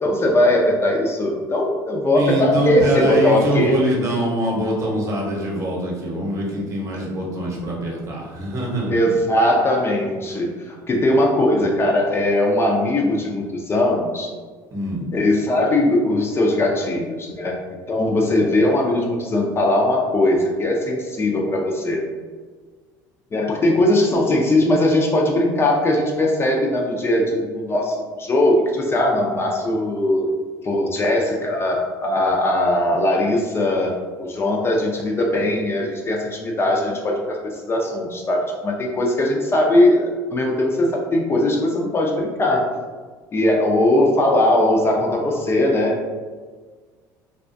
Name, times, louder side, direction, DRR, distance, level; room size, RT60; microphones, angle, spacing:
voice 1, 0.0-3.7 6.9-7.1 8.9-14.3 15.1-17.6 17.9-22.0 23.3-30.3 30.6-42.7 43.3-46.1, left 1 dB, 25° left, -1 dB, 0.4 m, -20 dB
voice 2, 2.1-9.0 14.7-15.1, right 1 dB, 35° right, -3 dB, 0.8 m, -23 dB
2.4 x 2.2 x 2.5 m, 1.5 s
supercardioid pair, 95°, 9 cm